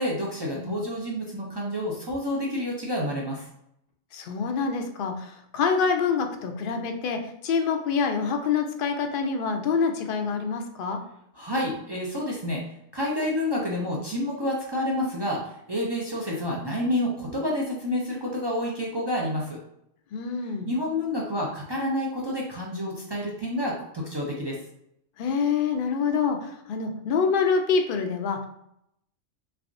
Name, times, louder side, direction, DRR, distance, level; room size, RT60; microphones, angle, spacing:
voice 1, 0.0-3.5 11.3-12.6 12.9-19.6 20.7-24.6, left 1 dB, 45° right, -3 dB, 0.3 m, -29 dB
voice 2, 4.1-11.0 20.1-20.7 25.2-28.5, left 5 dB, 60° left, 5 dB, 0.6 m, -26 dB
3.4 x 3.4 x 2.5 m, 0.76 s
omnidirectional pair, 1.3 m